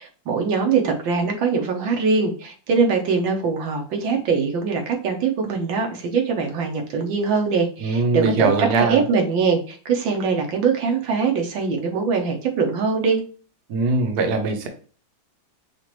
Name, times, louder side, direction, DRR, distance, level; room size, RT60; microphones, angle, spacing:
voice 1, 0.0-13.2, right 5 dB, 75° right, 2 dB, 1.6 m, -22 dB
voice 2, 7.8-9.0 13.7-14.7, right 3 dB, 60° right, 4 dB, 1.3 m, -21 dB
6.2 x 2.5 x 3.0 m, 0.38 s
omnidirectional pair, 2.1 m